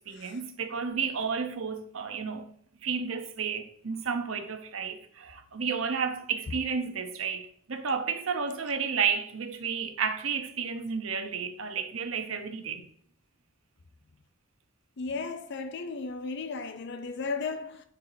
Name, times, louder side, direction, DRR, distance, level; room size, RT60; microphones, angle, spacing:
voice 1, 0.1-2.5 2.8-12.8, right 6 dB, 80° right, 0.9 m, -32 dB
voice 2, 15.0-17.8, left 4 dB, 60° left, 0.5 m, -35 dB
10.0 x 4.6 x 2.7 m
head